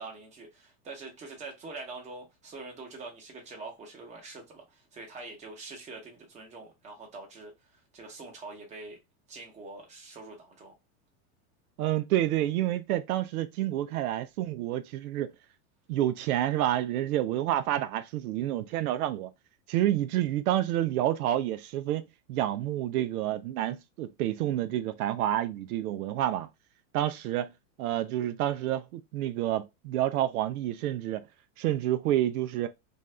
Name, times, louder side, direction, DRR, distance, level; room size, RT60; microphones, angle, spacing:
voice 1, 0.0-9.0 9.3-10.8, right 3 dB, 15° right, 0.9 m, -44 dB
voice 2, 11.8-15.3 15.9-19.3 19.7-26.5 26.9-27.5 27.8-31.2 31.6-32.7, right 13 dB, 80° right, 0.5 m, -29 dB
2.7 x 2.3 x 3.2 m
supercardioid pair, 145°, 43 cm